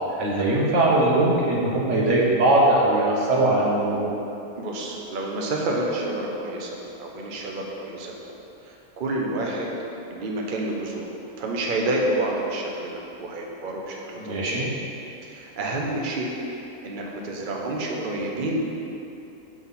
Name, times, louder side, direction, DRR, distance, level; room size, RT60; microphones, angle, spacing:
voice 1, 0.1-4.1 14.2-14.7, right 2 dB, 60° right, -4 dB, 1.5 m, -20 dB
voice 2, 4.6-8.1 8.6-9.7 10.1-14.6 15.2-16.3 16.8-18.6, right 2 dB, 45° right, -1 dB, 0.9 m, -29 dB
6.1 x 4.6 x 5.6 m, 2.9 s
omnidirectional pair, 1.4 m